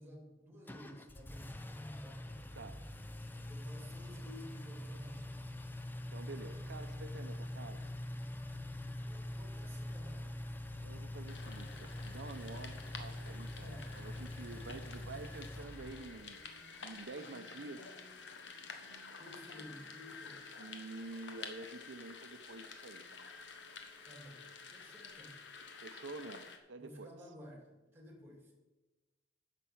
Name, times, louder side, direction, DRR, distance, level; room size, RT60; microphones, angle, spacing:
voice 1, 0.0-1.7 2.0-2.3 3.3-5.4 8.9-10.3 13.6-13.9 19.2-20.6 24.0-25.4 26.8-28.5, left 1 dB, 10° right, 1 dB, 2.3 m, -54 dB
Engine, 0.7-16.4, left 1 dB, 10° left, 0.6 m, -44 dB
voice 2, 6.1-7.9 10.8-16.4 16.8-17.9 20.6-23.3 25.8-27.1, right 3 dB, 75° right, 8 dB, 0.6 m, -48 dB
sound 1, 11.3-26.6, left 4 dB, 75° left, 1.2 m, -51 dB
10.0 x 6.1 x 7.0 m, 1.2 s
head